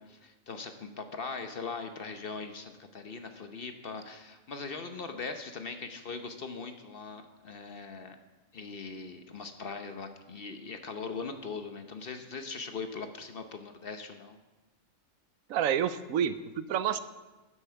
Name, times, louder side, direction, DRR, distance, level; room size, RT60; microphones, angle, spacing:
voice 1, 0.1-8.2 8.5-14.4, left 4 dB, 50° left, 7 dB, 0.9 m, -40 dB
voice 2, 15.5-17.0, right 9 dB, 80° right, 13 dB, 1.1 m, -29 dB
12.0 x 9.8 x 5.8 m, 1.2 s
omnidirectional pair, 1.4 m